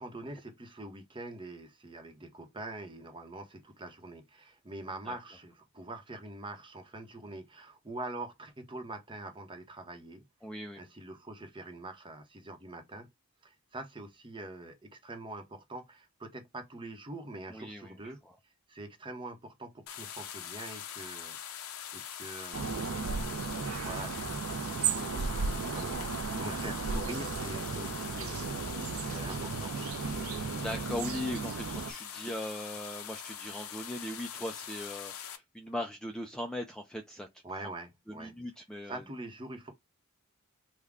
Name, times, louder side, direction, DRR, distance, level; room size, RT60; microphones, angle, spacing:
voice 1, 0.0-10.2 10.8-13.1 13.4-18.2 18.7-21.4 21.9-28.6 29.1-29.7 37.4-38.3 38.9-39.7, right 2 dB, 25° right, 0.8 m, -44 dB
voice 2, 10.4-10.8 17.5-18.4 30.1-37.3 38.1-39.0, left 1 dB, 5° left, 0.3 m, -39 dB
sound 1, 19.9-35.4, left 9 dB, 80° left, 0.6 m, -43 dB
sound 2, 22.5-31.9, right 5 dB, 70° right, 0.5 m, -35 dB
3.5 x 2.1 x 3.5 m
head